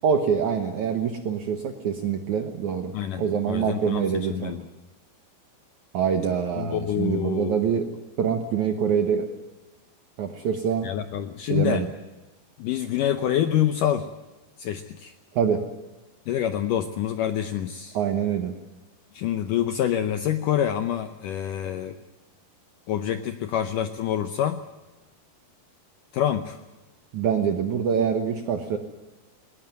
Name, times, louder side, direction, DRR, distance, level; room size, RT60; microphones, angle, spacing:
voice 1, 0.0-4.5 5.9-7.9 8.2-9.3 10.2-10.9 11.5-11.9 15.4-15.6 17.9-18.6 27.1-28.8, right 7 dB, 65° right, 6 dB, 2.0 m, -25 dB
voice 2, 2.9-4.6 6.6-7.8 10.8-11.9 12.6-14.1 14.6-15.1 16.3-18.0 19.1-22.0 22.9-24.6 26.1-26.6, left 10 dB, 85° left, 9 dB, 1.8 m, -26 dB
19.5 x 19.5 x 9.4 m, 1.1 s
omnidirectional pair, 5.0 m